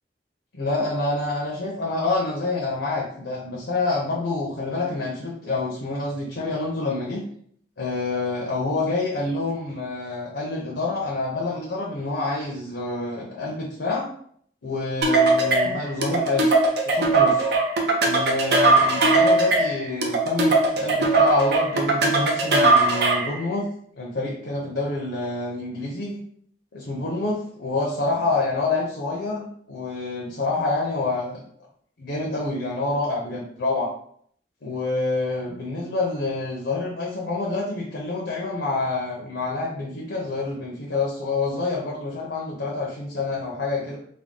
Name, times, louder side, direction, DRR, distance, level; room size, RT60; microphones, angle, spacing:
voice 1, 0.5-7.2 7.8-14.1 14.6-16.5 16.8-17.5 18.0-23.7 24.0-26.2 26.7-31.4 32.0-33.9 34.6-44.0, left 3 dB, 80° left, -2 dB, 0.7 m, -27 dB
Pringle rhythm - Glass, 15.0-23.4, right 2 dB, 65° right, 0.6 m, -20 dB
3.5 x 2.2 x 3.7 m, 0.63 s
head